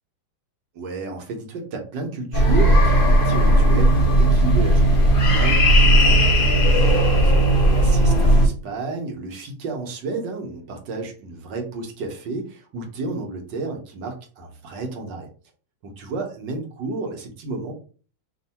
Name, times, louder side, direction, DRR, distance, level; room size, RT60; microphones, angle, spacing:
voice 1, 0.7-15.3 15.8-17.7, right 3 dB, 70° right, 3 dB, 1.6 m, -32 dB
sound 1, 2.3-8.5, right 1 dB, 55° left, 0.5 m, -16 dB
3.6 x 2.6 x 4.1 m, 0.39 s
omnidirectional pair, 2.1 m